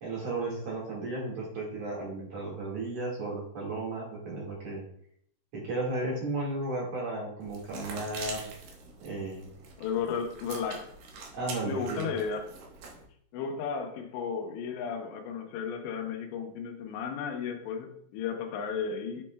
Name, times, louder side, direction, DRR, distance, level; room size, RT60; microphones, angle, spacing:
voice 1, 0.0-4.9 5.5-8.4 9.0-9.5 11.3-12.1, right 2 dB, 50° right, 2.4 m, -34 dB
sound 1, 7.4-13.0, right 4 dB, 65° right, 2.7 m, -44 dB
voice 2, 9.8-10.9 11.6-12.5 13.3-19.2, left 6 dB, 85° left, 3.0 m, -34 dB
9.7 x 5.3 x 2.2 m
omnidirectional pair, 4.9 m